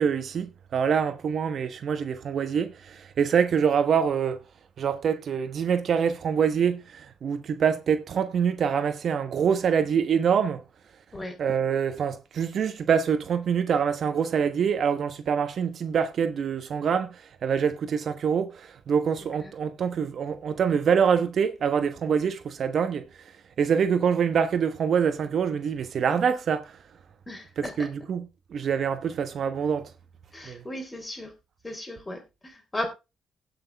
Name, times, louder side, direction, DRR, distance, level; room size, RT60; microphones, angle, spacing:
voice 1, 0.0-4.4 4.8-10.6 11.4-23.3 23.6-26.8 27.6-29.9 30.4-30.6, right 7 dB, 60° right, 1.1 m, -25 dB
voice 2, 27.3-27.9 30.3-31.3 31.6-32.9, left 1 dB, 20° left, 3.6 m, -36 dB
17.0 x 6.1 x 3.5 m
cardioid pair, 90°, 0 cm